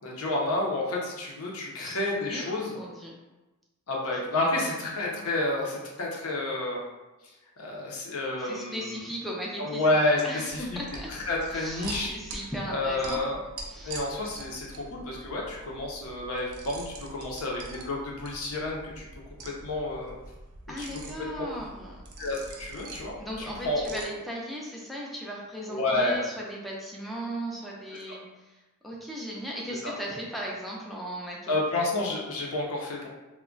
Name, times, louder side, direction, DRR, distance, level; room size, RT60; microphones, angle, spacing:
voice 1, 0.0-2.8 3.9-6.8 7.6-9.1 9.6-10.8 11.1-12.1 12.7-13.4 13.8-19.1 19.4-20.1 20.8-20.9 21.3-21.4 22.2-24.1 25.7-26.3 29.8-29.9 31.5-33.1, left 2 dB, 70° left, -2 dB, 0.6 m, -30 dB
voice 2, 1.7-3.1 8.4-9.9 10.2-11.1 11.5-13.2 13.6-14.1 20.7-22.0 23.2-31.6, equal, ahead, -4 dB, 0.4 m, -37 dB
sound 1, 10.5-24.0, right 2 dB, 85° right, 0.5 m, -44 dB
2.3 x 2.1 x 3.7 m, 1.1 s
head